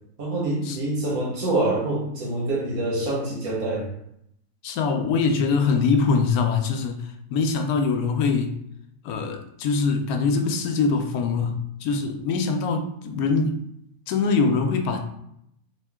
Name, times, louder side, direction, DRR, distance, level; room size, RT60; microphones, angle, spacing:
voice 1, 0.2-3.9, right 2 dB, 85° right, -3 dB, 1.7 m, -26 dB
voice 2, 4.6-7.0 7.3-8.6 9.0-13.6 14.1-15.0, left 4 dB, 85° left, 5 dB, 1.1 m, -23 dB
3.7 x 2.8 x 3.6 m, 0.75 s
omnidirectional pair, 1.5 m